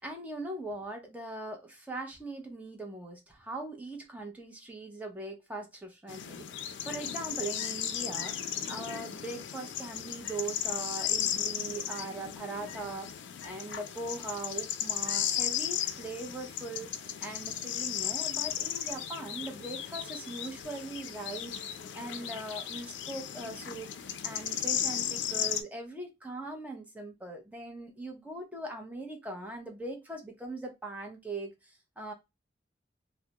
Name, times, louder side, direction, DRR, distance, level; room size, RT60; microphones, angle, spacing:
voice 1, 0.0-23.9 24.2-32.1, right 2 dB, 10° right, 0.6 m, -41 dB
sound 1, 6.1-25.6, left 10 dB, 85° left, 0.4 m, -35 dB
2.3 x 2.0 x 2.8 m
head